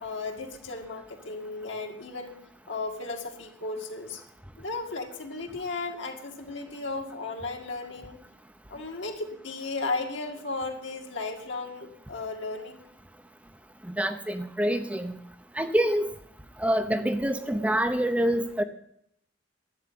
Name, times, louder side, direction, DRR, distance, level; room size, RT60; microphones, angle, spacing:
voice 1, 0.0-2.3 2.7-4.2 4.6-8.2 8.7-12.8, left 3 dB, 75° left, 2 dB, 2.2 m, -35 dB
voice 2, 13.8-15.2 15.5-16.1 16.6-18.6, equal, 5° right, 7 dB, 0.7 m, -26 dB
11.5 x 8.9 x 9.5 m, 0.72 s
head